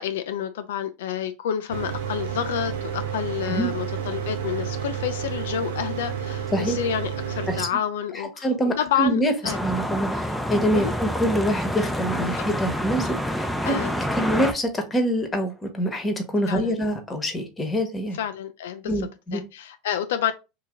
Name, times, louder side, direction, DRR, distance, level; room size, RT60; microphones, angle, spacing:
voice 1, 0.0-8.5 8.8-9.6 10.7-10.9 12.4-12.5 13.6-13.9 16.5-16.8 18.1-20.3, left 9 dB, 80° left, 0.3 m, -29 dB
Mechanical fan, 1.7-7.7, right 8 dB, 85° right, 0.8 m, -30 dB
voice 2, 8.4-9.3 9.6-18.2 18.8-19.4, equal, 20° left, 1.1 m, -25 dB
sound 1, 9.5-14.5, equal, ahead, 0.6 m, -27 dB
2.8 x 2.8 x 3.6 m
hypercardioid pair, 100°, 0 cm